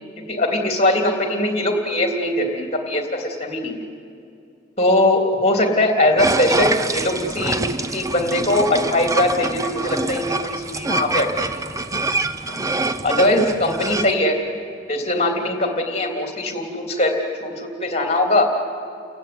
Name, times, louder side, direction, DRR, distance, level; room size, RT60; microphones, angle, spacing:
voice 1, 0.2-3.8 4.8-7.6 7.9-11.6 12.5-12.6 13.0-14.4 14.9-18.5, left 1 dB, 35° left, 3 dB, 3.3 m, -21 dB
sound 1, 6.2-14.1, right 2 dB, 20° right, 0.8 m, -25 dB
30.0 x 16.0 x 9.7 m, 2.5 s
head